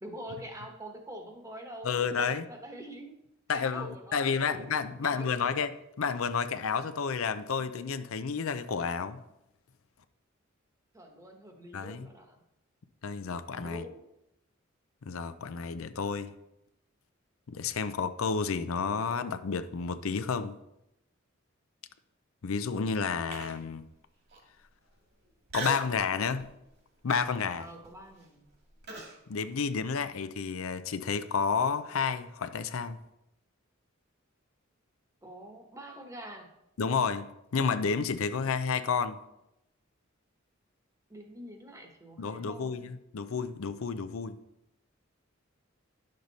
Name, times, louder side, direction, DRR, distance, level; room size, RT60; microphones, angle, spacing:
voice 1, 0.0-3.2 3.5-5.6 10.9-12.4 13.6-14.1 27.6-28.5 35.2-36.5 41.1-42.7, right 1 dB, 15° right, 1.2 m, -45 dB
voice 2, 1.8-2.4 3.5-5.7 6.0-9.2 11.7-12.1 13.0-13.8 15.1-16.3 17.5-20.6 22.4-23.8 25.5-26.5 27.0-27.7 29.3-33.0 36.8-37.3 37.5-39.2 42.2-44.3, left 5 dB, 90° left, 0.5 m, -31 dB
Human voice, 23.3-23.7 24.3-24.4 25.5-26.0 26.4-26.7 27.1-29.2, right 3 dB, 55° right, 2.1 m, -40 dB
10.5 x 6.5 x 4.1 m
head